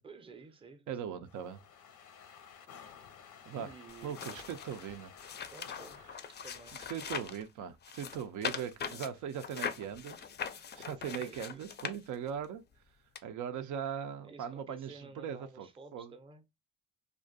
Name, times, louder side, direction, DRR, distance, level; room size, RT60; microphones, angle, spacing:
voice 1, 0.0-1.3 3.5-4.2 5.5-6.0 6.3-6.8 11.0-11.6 14.2-16.4, right 4 dB, 20° right, 0.5 m, -53 dB
voice 2, 0.9-1.6 3.5-3.7 4.0-5.1 6.9-10.3 10.8-12.6 13.2-16.1, right 8 dB, 80° right, 0.4 m, -40 dB
sound 1, 1.2-6.9, left 7 dB, 90° left, 0.6 m, -54 dB
sound 2, 3.9-7.4 7.8-12.5 13.2-13.3, left 7 dB, 35° left, 0.4 m, -41 dB
2.4 x 2.2 x 2.5 m
cardioid pair, 90°, 30 cm